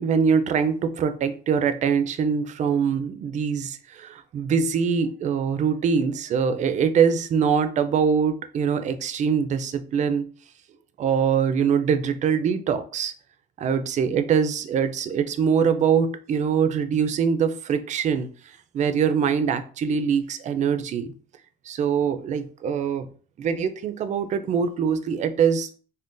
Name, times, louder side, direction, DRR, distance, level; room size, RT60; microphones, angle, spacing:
voice 1, 0.0-10.3 11.0-13.1 13.6-21.1 21.7-23.1 23.4-25.7, right 6 dB, 45° right, 10 dB, 0.4 m, -23 dB
3.7 x 2.1 x 2.5 m, 0.42 s
cardioid pair, 110°, 17 cm